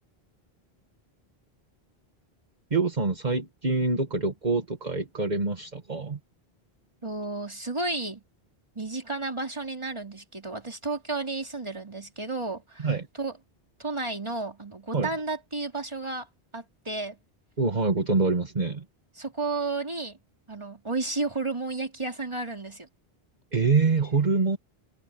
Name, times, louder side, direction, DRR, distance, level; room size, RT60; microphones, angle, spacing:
voice 1, 2.7-6.2 12.8-13.1 14.9-15.1 17.6-18.8 23.5-24.6, right 4 dB, 45° right, 1.7 m, -25 dB
voice 2, 7.0-8.2 8.7-12.9 13.2-13.3 13.8-16.3 16.5-17.2 19.1-20.2 20.5-22.9, right 3 dB, 30° right, 3.1 m, -32 dB
omnidirectional pair, 1.1 m